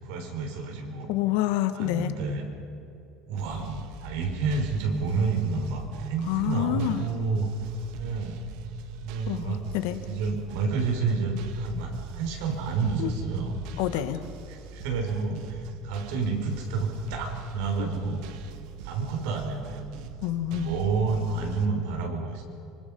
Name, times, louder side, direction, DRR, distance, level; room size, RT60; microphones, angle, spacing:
voice 1, 0.0-1.1 1.7-2.5 3.3-7.5 8.0-8.4 9.0-9.6 10.1-13.5 13.9-14.0 14.5-18.3 18.8-19.9 20.5-22.4, right 4 dB, 80° right, 2 dB, 6.1 m, -29 dB
voice 2, 1.1-2.1 6.3-7.0 9.3-10.0 13.0-13.1 13.8-14.2 17.8-17.9 20.2-20.7, left 13 dB, 80° left, 10 dB, 1.6 m, -27 dB
sound 1, 3.4-21.7, right 6 dB, 60° right, 1.6 m, -43 dB
26.5 x 26.0 x 5.6 m, 2.9 s
cardioid pair, 175°, 0 cm